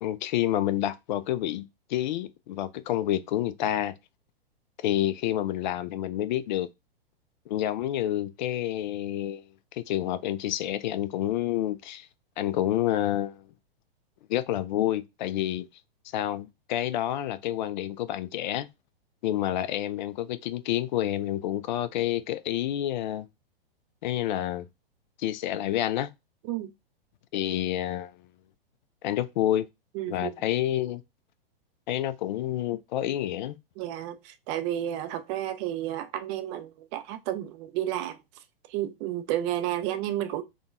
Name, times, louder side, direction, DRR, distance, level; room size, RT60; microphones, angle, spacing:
voice 1, 0.0-3.9 4.8-6.7 7.5-9.4 9.7-12.1 12.4-13.4 14.3-15.6 16.1-18.7 19.2-23.3 24.0-24.7 25.2-26.1 27.3-28.1 29.0-29.7 30.1-31.0 31.9-33.6, left 12 dB, 50° left, 0.4 m, -28 dB
voice 2, 29.9-30.3 33.8-38.2 38.7-40.4, right 12 dB, 30° right, 0.4 m, -31 dB
3.7 x 2.2 x 2.4 m
hypercardioid pair, 115°, 30 cm